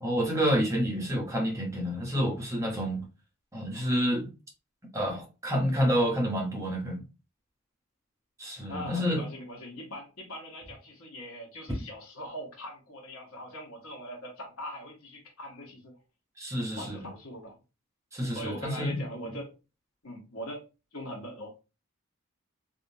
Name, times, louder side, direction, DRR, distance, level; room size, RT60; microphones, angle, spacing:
voice 1, 0.0-3.1 3.5-4.3 4.9-7.0 8.4-9.2 16.4-17.0 18.1-19.0, equal, 15° right, 0.9 m, -28 dB
voice 2, 8.7-16.0 16.8-17.6 18.3-19.5 20.0-20.6 20.9-21.5, equal, 80° left, 1.2 m, -41 dB
3.5 x 2.6 x 2.6 m
head